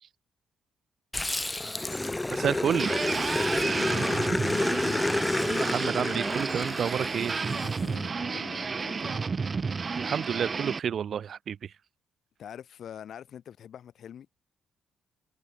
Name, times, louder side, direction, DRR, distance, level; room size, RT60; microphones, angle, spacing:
Growling, 1.1-7.8, left 2 dB, 15° left, 2.9 m, -30 dB
voice 1, 2.3-2.9 5.5-7.4 10.0-11.7, right 8 dB, 55° right, 3.2 m, -30 dB
sound 1, 2.8-10.8, right 5 dB, 35° right, 2.2 m, -31 dB
voice 2, 3.5-5.0 7.5-9.3 12.4-14.3, left 9 dB, 65° left, 7.5 m, -44 dB
cardioid pair, 90°, 0 cm